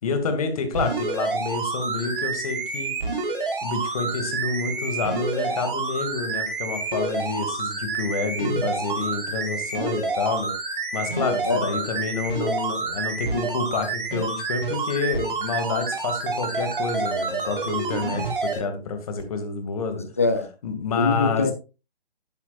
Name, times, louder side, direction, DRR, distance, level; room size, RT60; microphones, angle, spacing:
voice 1, 0.0-2.9 3.6-10.5 10.9-20.0 20.6-21.5, left 4 dB, 35° left, 2.2 m, -28 dB
sound 1, 0.7-18.6 19.2-19.3, right 4 dB, 55° right, 3.7 m, -28 dB
voice 2, 11.5-11.8 20.2-20.5 21.0-21.5, left 3 dB, 15° left, 0.5 m, -23 dB
11.5 x 9.8 x 2.4 m
figure-of-eight pair, 150°, 32 cm